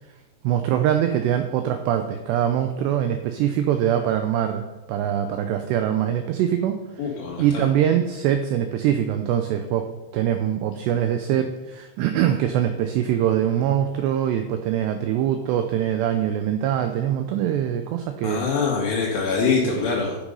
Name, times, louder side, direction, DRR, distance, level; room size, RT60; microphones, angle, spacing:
voice 1, 0.4-7.1 7.4-9.8 10.1-18.5, right 10 dB, 85° right, 7 dB, 2.4 m, -23 dB
voice 2, 7.0-7.7 18.2-20.1, left 5 dB, 75° left, -3 dB, 5.1 m, -24 dB
12.0 x 6.0 x 5.5 m, 1.1 s
omnidirectional pair, 5.7 m